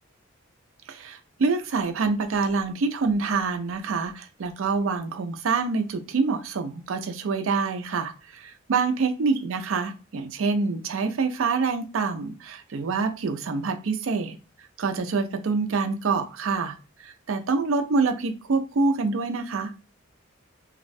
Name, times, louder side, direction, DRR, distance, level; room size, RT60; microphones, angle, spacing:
voice 1, 0.9-14.4 14.8-16.7 17.0-19.7, right 4 dB, 70° right, 7 dB, 0.4 m, -26 dB
2.3 x 2.1 x 2.5 m, 0.33 s
head